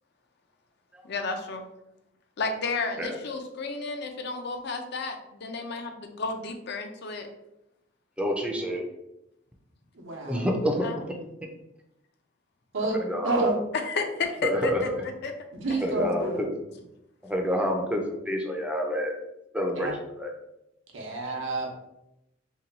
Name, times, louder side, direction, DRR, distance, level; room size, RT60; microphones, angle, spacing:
voice 1, 1.0-1.6 2.4-7.3 10.8-11.0 13.8-15.3 15.7-15.9, left 4 dB, 60° left, 5 dB, 0.5 m, -32 dB
voice 2, 8.2-8.8 10.3-10.9 12.9-13.4 14.4-14.8 15.8-16.5 17.2-19.1 19.5-20.3, equal, 5° right, 2 dB, 0.4 m, -28 dB
voice 3, 10.0-10.5 12.7-13.6 15.6-16.4 19.8-19.9 20.9-21.7, right 2 dB, 90° right, -1 dB, 0.8 m, -29 dB
2.8 x 2.3 x 3.9 m, 0.87 s
head